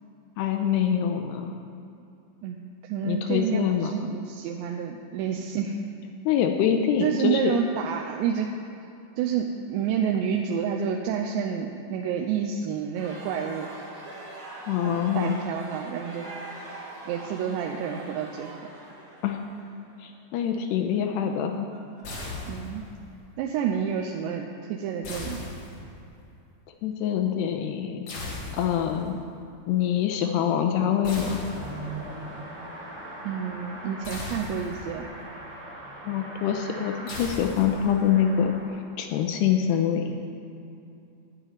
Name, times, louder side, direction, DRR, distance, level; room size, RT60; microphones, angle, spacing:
voice 1, 0.4-1.5 3.0-3.9 6.3-7.5 14.7-15.4 19.2-19.4 20.0-21.7 26.8-28.1 28.5-29.2 29.7-31.4 36.0-40.2, left 9 dB, 80° left, 5 dB, 2.5 m, -25 dB
voice 2, 2.4-5.8 7.0-8.5 9.2-13.7 15.2-16.3 17.1-18.6 22.5-22.8 23.4-25.4 33.2-35.1, right 7 dB, 80° right, 2 dB, 2.8 m, -29 dB
sound 1, 12.9-22.9, right 2 dB, 55° right, 1.1 m, -43 dB
sound 2, 22.0-23.0 25.0-26.1 28.1-29.0 31.0-32.0 34.0-35.0 37.1-38.1, left 2 dB, 50° left, 1.9 m, -37 dB
Car passing by / Accelerating revving vroom, 31.2-38.6, right 1 dB, 30° right, 1.5 m, -40 dB
10.5 x 9.1 x 9.5 m, 2.6 s
omnidirectional pair, 5.4 m